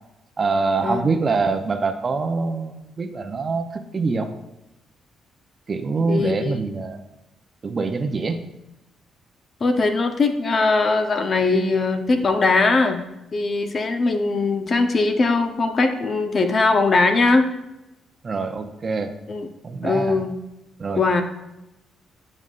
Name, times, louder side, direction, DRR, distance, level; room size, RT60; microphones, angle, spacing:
voice 1, 0.4-4.3 5.7-7.0 7.6-8.5 18.2-19.1 19.6-20.2 20.8-21.2, right 4 dB, 35° right, 7 dB, 0.7 m, -24 dB
voice 2, 6.1-6.5 9.6-13.0 13.3-17.5 19.3-19.5 19.8-20.3 21.0-21.2, left 3 dB, 40° left, 6 dB, 0.8 m, -20 dB
9.5 x 5.4 x 2.5 m, 0.93 s
cardioid pair, 90°, 0 cm